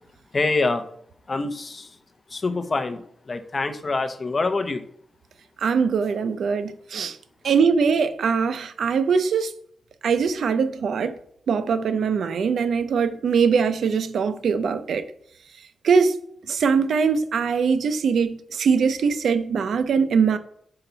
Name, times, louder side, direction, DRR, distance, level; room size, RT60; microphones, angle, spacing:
voice 1, 0.3-0.8 1.3-2.0 2.3-4.8, left 3 dB, 35° left, 0.6 m, -25 dB
voice 2, 5.6-7.2 7.4-9.5 10.0-11.1 11.5-15.0 15.8-16.1 16.5-20.4, right 5 dB, 80° right, 0.5 m, -22 dB
5.8 x 5.5 x 3.9 m
wide cardioid pair, 105°, 0 cm